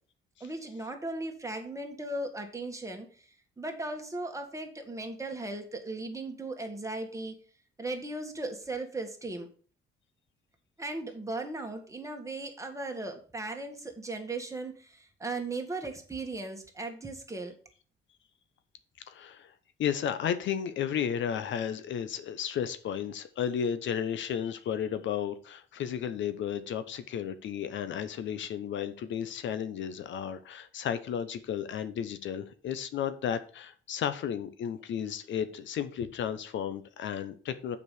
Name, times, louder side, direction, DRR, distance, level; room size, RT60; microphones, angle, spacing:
voice 1, 0.4-7.4 7.8-9.5 10.8-17.6, right 2 dB, 15° right, 4 dB, 1.9 m, -37 dB
voice 2, 19.1-19.5 19.8-37.8, left 8 dB, 70° left, 12 dB, 0.9 m, -33 dB
6.7 x 5.4 x 6.4 m, 0.41 s
cardioid pair, 90°, 20 cm